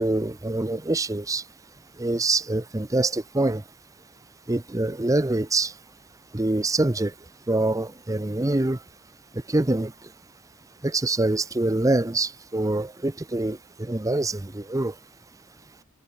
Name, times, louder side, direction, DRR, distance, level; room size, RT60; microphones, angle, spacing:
voice 1, 0.0-1.4 2.0-3.6 4.5-5.7 6.3-7.1 7.5-8.8 9.3-9.9 10.8-14.9, right 2 dB, 15° right, 0.6 m, -25 dB
head